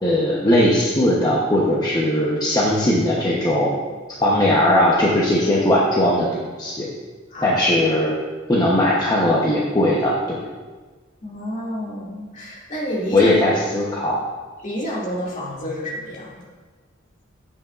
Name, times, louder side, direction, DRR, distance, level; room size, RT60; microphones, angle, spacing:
voice 1, 0.0-3.7 4.2-6.3 6.6-6.9 7.4-8.2 8.5-10.4 13.1-14.2, left 1 dB, 20° left, -5 dB, 0.9 m, -18 dB
voice 2, 11.2-13.5 14.6-16.5, equal, 40° left, -6 dB, 2.4 m, -29 dB
9.2 x 8.5 x 2.5 m, 1.4 s
head